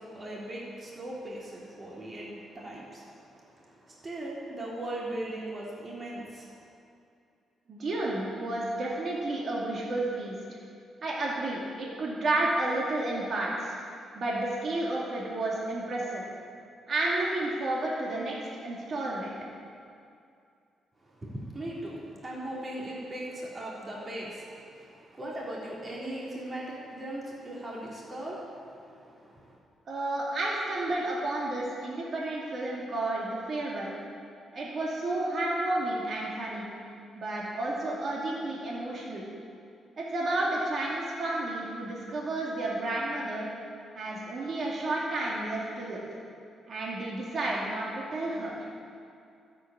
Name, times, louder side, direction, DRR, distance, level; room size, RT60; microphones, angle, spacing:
voice 1, 0.0-6.5 21.0-29.6, right 1 dB, 30° right, -5 dB, 3.4 m, -39 dB
voice 2, 7.7-10.6 11.0-13.8 14.1-16.2 16.9-19.3 29.9-33.9 34.5-36.7 37.2-39.3 40.0-43.5 43.9-46.0 46.7-48.5, right 2 dB, 50° right, -4 dB, 2.6 m, -31 dB
12.5 x 8.5 x 8.7 m, 2.4 s
cardioid pair, 95°, 0 cm